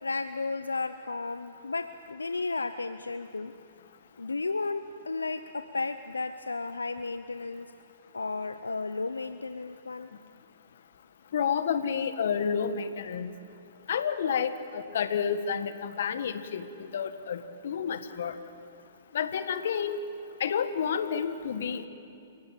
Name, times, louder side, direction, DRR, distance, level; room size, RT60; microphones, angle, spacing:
voice 1, 0.0-3.5 4.2-7.7 8.1-10.1, left 3 dB, 90° left, 11 dB, 0.7 m, -33 dB
voice 2, 11.3-13.3 13.9-18.4 19.1-20.0 20.4-21.9, left 7 dB, 65° left, 10 dB, 1.6 m, -30 dB
29.5 x 16.0 x 8.9 m, 2.7 s
hypercardioid pair, 115°, 0 cm